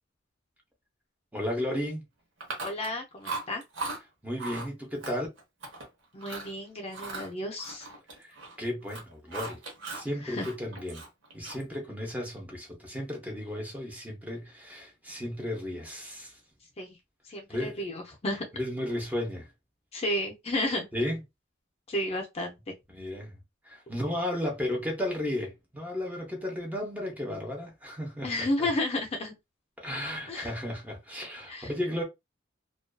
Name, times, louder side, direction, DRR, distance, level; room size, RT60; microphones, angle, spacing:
voice 1, 1.3-2.0 4.2-5.3 8.2-8.3 8.6-9.6 9.9-11.0 11.3-16.4 17.5-17.9 18.5-19.5 20.9-21.2 22.9-23.4 23.6-28.7 29.8-32.0, left 1 dB, 10° right, 0.7 m, -34 dB
Chewing mastication, 2.4-3.0 3.2-4.0 4.4-4.7 5.0-5.9 6.2-6.5 6.9-8.6 8.8-10.1 10.4-11.8, right 3 dB, 75° right, 0.9 m, -38 dB
voice 2, 2.6-3.6 6.1-7.9 10.2-10.5 16.8-17.0 17.2-18.4 19.9-20.9 21.9-22.6 28.2-29.3 30.3-30.5 31.5-31.7, left 1 dB, 30° left, 0.5 m, -32 dB
2.5 x 2.3 x 2.2 m
head